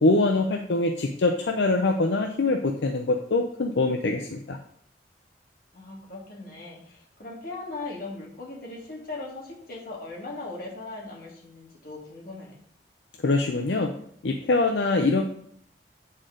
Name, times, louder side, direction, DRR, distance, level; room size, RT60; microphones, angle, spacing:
voice 1, 0.0-4.6 13.2-13.9 14.2-15.2, left 2 dB, 80° left, 4 dB, 0.6 m, -23 dB
voice 2, 5.7-12.6, left 2 dB, 55° left, -2 dB, 2.1 m, -39 dB
9.0 x 4.4 x 3.8 m, 0.66 s
head